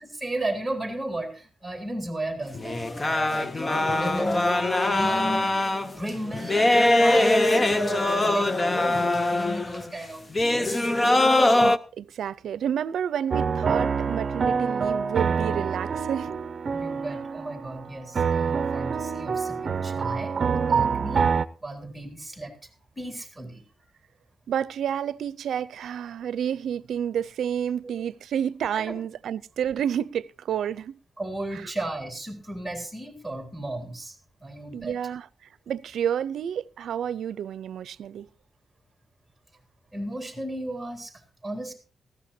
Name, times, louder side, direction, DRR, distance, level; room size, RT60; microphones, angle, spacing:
voice 1, 0.1-3.5 3.8-4.5 4.8-5.5 5.8-10.3 10.6-11.0 15.5-15.6 16.7-21.3 21.6-22.5 23.0-23.6 28.7-29.0 31.2-34.1 34.4-35.0 39.9-41.1 41.4-41.7, right 1 dB, ahead, 3.5 m, -35 dB
sound 1, 2.5-9.9 10.3-11.8, left 2 dB, 20° left, 0.7 m, -22 dB
voice 2, 11.6-16.3 24.5-31.0 31.5-31.7 34.7-35.3 35.7-38.3, right 9 dB, 80° right, 0.5 m, -30 dB
sound 2, 13.3-17.9 18.2-21.5, right 6 dB, 45° right, 0.7 m, -26 dB
19.5 x 14.5 x 2.8 m
wide cardioid pair, 135°, 0 cm